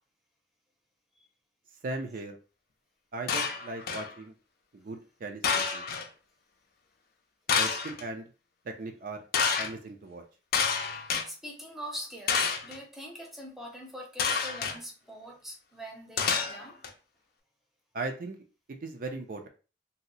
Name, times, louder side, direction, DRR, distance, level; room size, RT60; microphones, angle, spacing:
voice 1, 1.8-2.4 3.1-4.3 4.7-5.8 7.5-8.3 8.6-9.2 9.6-10.2 17.9-18.4 18.8-19.5, right 2 dB, 50° right, 0.4 m, -38 dB
Dropped Metal Sheet, 3.3-4.1 5.4-6.1 7.5-8.0 9.3-9.7 10.5-11.2 12.3-12.8 14.2-14.8 16.2-16.9, left 6 dB, 55° left, 0.5 m, -28 dB
voice 2, 11.3-16.8, equal, ahead, 0.7 m, -43 dB
2.7 x 2.0 x 3.9 m
head